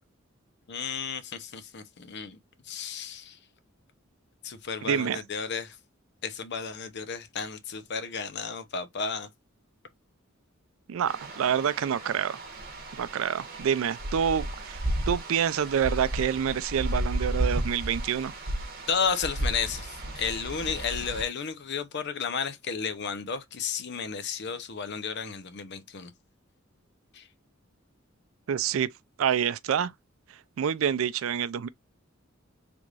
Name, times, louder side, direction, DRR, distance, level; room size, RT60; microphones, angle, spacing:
voice 1, 0.7-2.4 2.7-3.4 4.4-5.8 6.2-9.3 18.9-26.1 27.1-27.3, left 6 dB, 55° left, 0.7 m, -33 dB
voice 2, 4.9-5.2 10.9-12.4 13.0-18.3 28.5-28.9 29.2-29.9 30.6-31.7, right 8 dB, 75° right, 0.4 m, -27 dB
sound 1, 11.1-21.2, right 1 dB, 50° right, 1.1 m, -33 dB
3.4 x 3.1 x 2.4 m
head